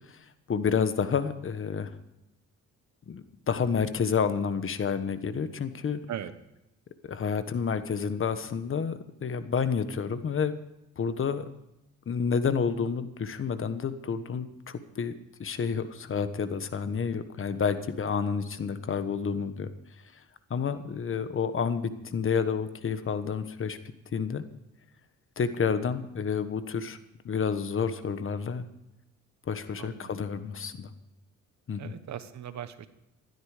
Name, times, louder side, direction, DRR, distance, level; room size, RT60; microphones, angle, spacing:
voice 1, 0.1-2.0 3.1-6.0 7.0-10.6 11.0-11.5 12.1-15.1 15.4-19.7 20.1-20.2 20.5-23.8 24.1-24.4 25.4-27.0 27.2-28.7 29.5-30.9 31.7-31.9, left 6 dB, 45° left, 11 dB, 1.3 m, -29 dB
voice 2, 29.8-30.2 31.8-32.9, right 10 dB, 65° right, 12 dB, 1.2 m, -39 dB
15.5 x 12.5 x 5.0 m, 0.90 s
cardioid pair, 90°, 30 cm